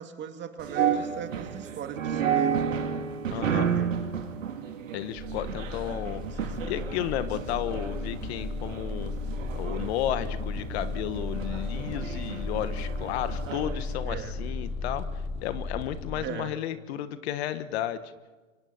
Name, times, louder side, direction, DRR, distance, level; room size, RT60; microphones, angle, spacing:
voice 1, 0.0-2.8 3.2-3.9 4.9-5.0 6.1-6.6 14.1-14.3 16.1-16.5, right 8 dB, 25° right, 7 dB, 2.3 m, -40 dB
sound 1, 0.6-13.9, right 8 dB, 70° right, 2.7 m, -32 dB
voice 2, 3.3-3.7 4.9-9.1 9.5-15.0 15.4-18.1, left 12 dB, 50° left, 12 dB, 1.4 m, -33 dB
sound 2, 5.2-16.1, left 3 dB, 15° left, 3.2 m, -35 dB
29.0 x 24.5 x 4.2 m, 1.3 s
hypercardioid pair, 105°, 40 cm